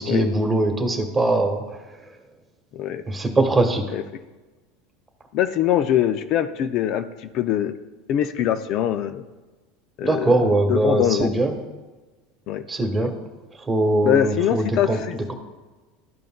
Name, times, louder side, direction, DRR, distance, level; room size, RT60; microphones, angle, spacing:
voice 1, 0.0-1.6 3.1-3.8 10.0-11.5 12.7-13.1 13.7-15.3, right 2 dB, 15° right, 5 dB, 1.2 m, -21 dB
voice 2, 5.3-7.8 8.1-9.2 10.0-10.4 10.7-11.3 12.5-12.6 13.0-13.1 14.0-15.2, left 10 dB, 55° left, 10 dB, 0.4 m, -23 dB
12.5 x 5.3 x 2.2 m, 1.2 s
supercardioid pair, 100°, 0 cm